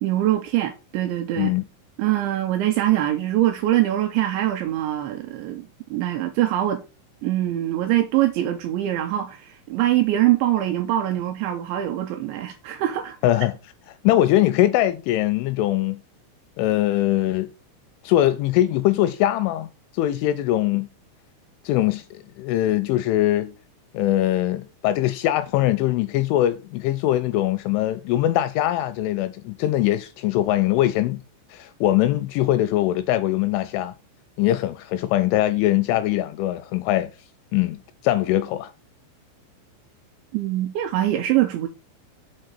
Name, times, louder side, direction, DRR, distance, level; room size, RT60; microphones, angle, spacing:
voice 1, 0.0-1.5 2.0-6.8 7.2-13.2 40.3-41.7, right 13 dB, 85° right, 2.6 m, -23 dB
voice 2, 13.2-13.5 14.0-16.0 16.6-17.5 18.0-19.7 19.9-20.9 21.6-23.5 23.9-31.2 31.5-33.9 34.4-37.1 37.5-38.7, left 14 dB, 85° left, 2.8 m, -22 dB
7.6 x 4.0 x 6.5 m
omnidirectional pair, 5.9 m